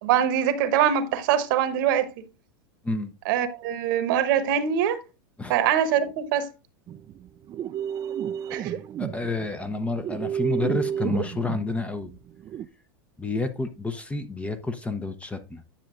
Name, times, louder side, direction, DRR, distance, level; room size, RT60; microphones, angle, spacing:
voice 1, 0.0-2.1 3.2-5.0 5.5-6.5 8.5-8.7, right 9 dB, 60° right, 1.1 m, -23 dB
sound 1, 6.9-12.7, right 9 dB, 30° right, 0.5 m, -31 dB
voice 2, 9.0-12.1 13.2-15.6, left 3 dB, 10° left, 0.8 m, -29 dB
10.0 x 7.0 x 2.5 m
hypercardioid pair, 100°, 12 cm